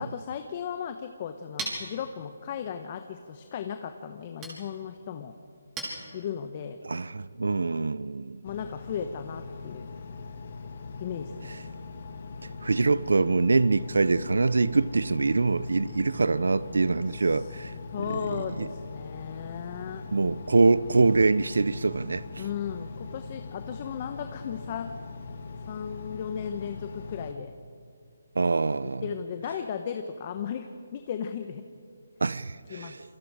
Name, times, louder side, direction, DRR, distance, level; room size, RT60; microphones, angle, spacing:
voice 1, 0.0-5.3 6.1-6.8 8.4-9.9 11.0-11.6 17.1-17.5 17.9-20.1 22.4-24.9 25.7-27.5 29.0-31.6 32.7-33.0, left 8 dB, 35° left, 1.1 m, -36 dB
Chink clink, 1.0-6.7, right 2 dB, 15° right, 5.2 m, -42 dB
voice 2, 6.8-8.4 12.6-17.7 18.6-18.7 20.1-22.4 28.4-29.1 32.2-33.0, right 3 dB, 80° right, 0.6 m, -24 dB
Engine, 8.4-27.3, left 4 dB, 55° left, 2.1 m, -41 dB
28.0 x 23.5 x 5.0 m
hypercardioid pair, 160°, 0 cm